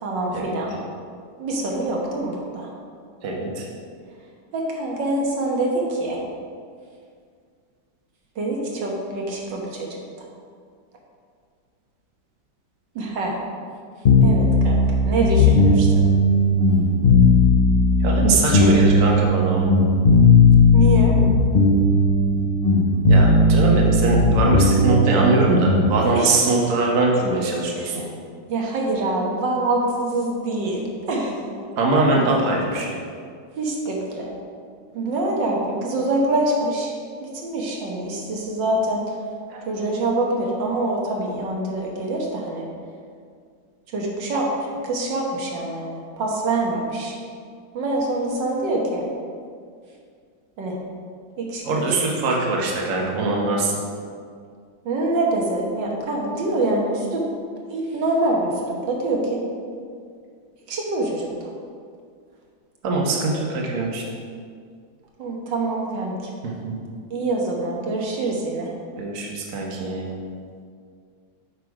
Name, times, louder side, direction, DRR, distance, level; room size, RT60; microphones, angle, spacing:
voice 1, 0.0-0.7 1.4-2.7 4.5-5.7 6.0-6.2 8.4-9.6 13.0-13.3 14.2-14.8 15.1-15.9 20.7-21.1 26.2-26.3 27.8-27.9 28.5-30.8 31.1-31.3 33.6-34.3 35.0-36.9 37.2-39.0 39.7-42.6 43.9-44.5 44.9-47.1 47.8-49.0 50.6-50.7 51.4-51.6 52.0-52.1 54.9-57.2 57.7-58.5 58.9-59.4 60.7-61.3 65.2-66.1 67.1-68.7, right 2 dB, 80° right, -1 dB, 1.9 m, -25 dB
voice 2, 3.2-3.7 18.0-19.7 23.1-28.0 31.8-33.0 39.5-39.6 51.6-53.7 62.8-64.0 66.4-66.7 69.0-70.0, right 2 dB, 50° right, -1 dB, 1.4 m, -22 dB
sound 1, 14.0-25.9, left 2 dB, 50° left, 0.7 m, -16 dB
8.0 x 5.8 x 4.8 m, 2.1 s
omnidirectional pair, 1.9 m